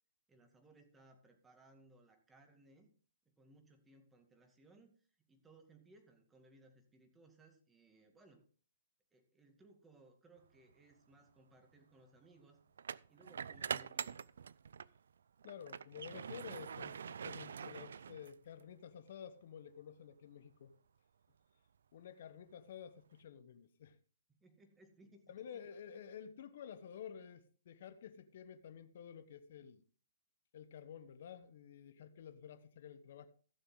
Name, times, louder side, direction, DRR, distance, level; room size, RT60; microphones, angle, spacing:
voice 1, 0.3-2.9 3.3-8.4 9.1-12.6 13.1-14.2 24.3-25.8, right 2 dB, 10° right, 2.1 m, -65 dB
sound 1, 10.7-10.9 12.8-15.0 15.4-18.6, right 7 dB, 75° right, 0.4 m, -44 dB
voice 2, 15.4-20.7 21.9-24.0 25.3-29.8 30.5-33.3, left 8 dB, 60° left, 1.1 m, -51 dB
15.5 x 6.9 x 3.9 m
hypercardioid pair, 135°, 0 cm